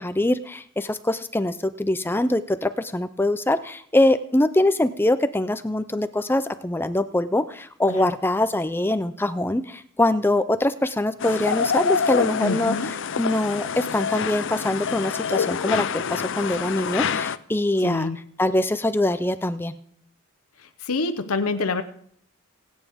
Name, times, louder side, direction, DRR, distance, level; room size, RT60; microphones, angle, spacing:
voice 1, 0.0-18.1 18.4-19.7, left 1 dB, 10° left, 12 dB, 0.5 m, -23 dB
sound 1, 11.2-17.4, left 6 dB, 60° left, 0.5 m, -26 dB
voice 2, 12.4-12.9 17.8-18.2 20.8-21.8, left 3 dB, 90° left, 8 dB, 0.9 m, -26 dB
27.0 x 9.1 x 3.6 m, 0.63 s
head